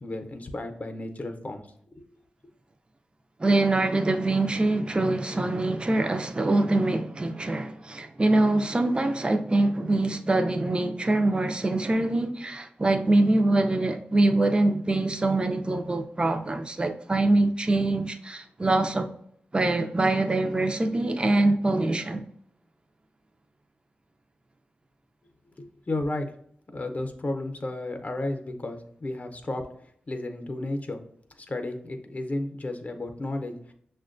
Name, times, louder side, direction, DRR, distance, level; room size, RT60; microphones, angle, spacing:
voice 1, 0.0-1.7 25.6-26.3 26.7-29.6 30.1-31.0 31.4-33.7, left 2 dB, 45° left, 0.6 m, -33 dB
voice 2, 3.4-19.1 19.5-22.2, right 2 dB, 25° right, 0.4 m, -24 dB
6.1 x 2.2 x 2.5 m
cardioid pair, 45°, 4 cm